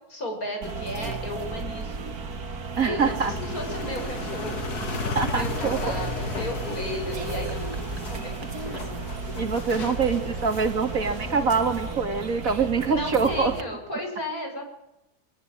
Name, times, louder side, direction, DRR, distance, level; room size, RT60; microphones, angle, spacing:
voice 1, 0.1-2.0 2.8-8.3 12.8-14.7, left 1 dB, 70° left, 3 dB, 6.6 m, -35 dB
sound 1, 0.6-13.6, right 3 dB, 75° right, 2.5 m, -34 dB
voice 2, 2.8-3.3 5.2-5.8 9.4-13.5, right 5 dB, 60° right, 7 dB, 2.7 m, -24 dB
sound 2, 3.0-12.2, left 4 dB, 85° left, 2.6 m, -36 dB
23.0 x 19.5 x 8.9 m, 0.93 s
omnidirectional pair, 1.6 m